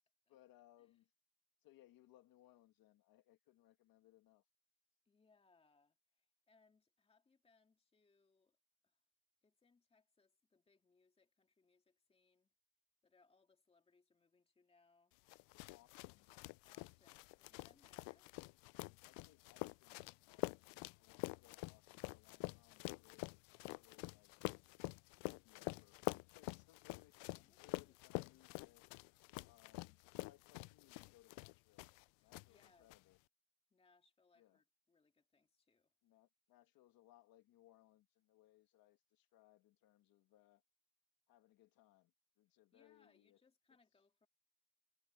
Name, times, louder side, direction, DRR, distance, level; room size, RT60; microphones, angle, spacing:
voice 1, 0.3-1.1 1.6-4.4 15.7-16.3 18.8-24.4 25.1-26.0 26.3-28.8 29.4-31.9 32.2-33.2 34.3-34.6 36.0-40.6 41.3-43.4, left 14 dB, 50° left, 1.7 m, -69 dB
voice 2, 5.1-8.6 8.8-9.0 9.4-12.5 13.0-15.1 16.6-18.3 27.3-28.0 32.2-32.9 33.7-35.9 42.7-44.3, left 4 dB, 15° left, 2.3 m, -74 dB
sound 1, 15.3-32.0 32.3-33.0, left 25 dB, 90° left, 0.5 m, -47 dB
cardioid pair, 170°, 43 cm